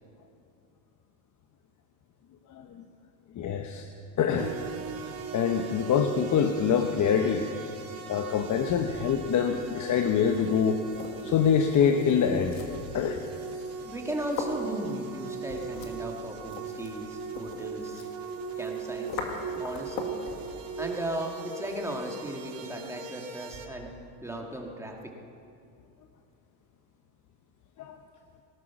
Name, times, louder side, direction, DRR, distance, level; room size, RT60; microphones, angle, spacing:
voice 1, 2.5-2.8 3.4-3.9 4.2-4.5 5.0-7.4 8.1-10.8 11.2-12.6 12.9-13.2 27.8-28.0, left 7 dB, 35° left, 6 dB, 0.9 m, -25 dB
sound 1, 4.4-23.7, right 5 dB, 45° right, 2.3 m, -39 dB
sound 2, 10.1-20.3, left 4 dB, 85° left, 2.3 m, -42 dB
voice 2, 13.8-18.0 18.6-19.1 19.6-20.0 20.8-23.9 24.2-25.0, right 1 dB, 5° right, 1 dB, 2.0 m, -36 dB
19.0 x 12.0 x 6.0 m, 2.6 s
supercardioid pair, 110°, 49 cm